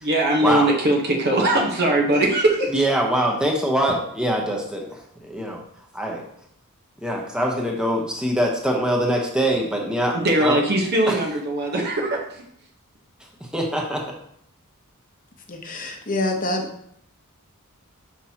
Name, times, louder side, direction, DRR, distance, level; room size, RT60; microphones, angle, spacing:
voice 1, 0.0-2.7 10.1-12.4, right 1 dB, 50° right, 0 dB, 1.0 m, -20 dB
voice 2, 2.7-5.6 5.9-6.2 7.0-10.6 11.1-11.2 13.5-14.0, right 1 dB, 5° right, -1 dB, 1.0 m, -23 dB
voice 3, 15.5-16.7, left 2 dB, 40° left, 4 dB, 0.9 m, -26 dB
6.0 x 6.0 x 2.9 m, 0.68 s
head